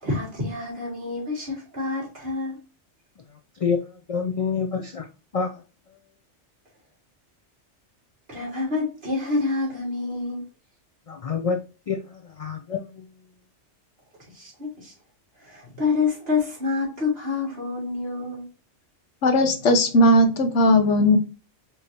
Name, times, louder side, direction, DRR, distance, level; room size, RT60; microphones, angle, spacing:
voice 1, 0.0-2.6 8.3-10.4 14.3-14.9 15.4-18.4, left 4 dB, 60° right, 2.5 m, -27 dB
voice 2, 3.6-5.1 5.3-5.6 11.1-11.6 11.9-13.1, left 5 dB, 60° left, 0.3 m, -27 dB
voice 3, 19.2-21.2, left 1 dB, 80° left, 1.1 m, -17 dB
4.9 x 2.8 x 2.7 m
omnidirectional pair, 1.2 m